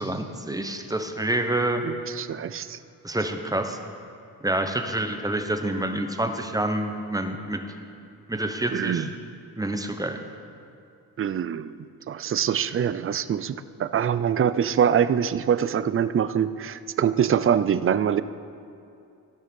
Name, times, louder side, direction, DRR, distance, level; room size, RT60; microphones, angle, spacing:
voice 1, 0.0-1.8 2.1-2.2 3.0-3.8 4.4-7.6 8.3-9.1 9.6-10.2, right 1 dB, 10° right, 5 dB, 0.9 m, -27 dB
voice 2, 1.8-2.8 8.7-9.1 11.2-11.7 12.1-18.2, right 8 dB, 35° right, 14 dB, 0.4 m, -24 dB
14.5 x 6.5 x 5.4 m, 2.6 s
cardioid pair, 100°, 39 cm